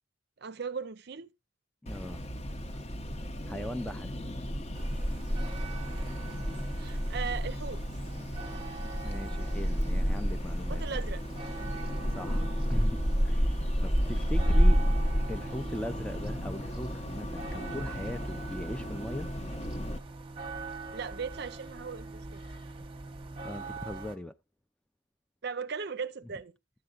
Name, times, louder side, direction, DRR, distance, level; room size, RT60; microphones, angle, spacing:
voice 1, 0.4-1.3 6.8-7.8 10.7-11.2 20.9-22.4 25.4-26.5, right 5 dB, 50° right, 0.5 m, -37 dB
voice 2, 1.8-2.2 3.5-4.1 9.0-11.0 12.1-14.8 15.3-19.3 23.4-24.3, left 1 dB, 5° left, 0.4 m, -39 dB
sound 1, 1.9-20.0, equal, 30° left, 0.7 m, -31 dB
sound 2, 4.7-24.2, right 3 dB, 25° right, 0.8 m, -43 dB
12.5 x 7.7 x 2.4 m
head